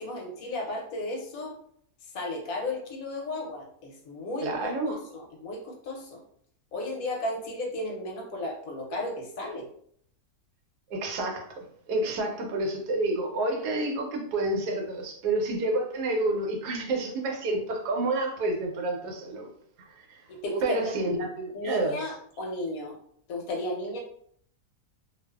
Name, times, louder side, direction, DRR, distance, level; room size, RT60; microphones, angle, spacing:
voice 1, 0.0-1.6 2.1-6.2 6.7-9.6 20.3-20.9 21.5-23.0 23.3-24.0, left 1 dB, 70° left, 1 dB, 1.0 m, -34 dB
voice 2, 4.4-5.0 10.9-19.5 19.9-20.3 20.6-22.0, right 2 dB, 85° right, 2 dB, 1.2 m, -29 dB
2.5 x 2.4 x 2.2 m, 0.63 s
omnidirectional pair, 1.7 m